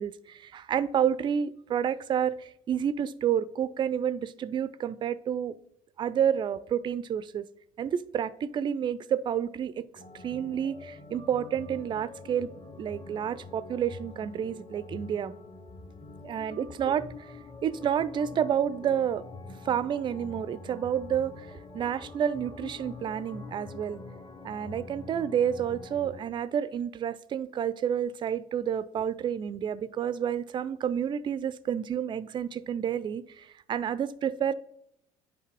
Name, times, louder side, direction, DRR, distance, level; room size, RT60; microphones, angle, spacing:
voice 1, 0.0-5.5 6.0-7.5 7.8-12.5 12.8-15.3 16.2-17.4 17.6-19.3 19.6-24.0 24.4-34.5, right 9 dB, 25° right, 16 dB, 0.3 m, -30 dB
sound 1, 9.9-26.2, left 3 dB, 25° left, 0.8 m, -45 dB
8.1 x 5.3 x 3.0 m, 0.74 s
figure-of-eight pair, 55°, 19 cm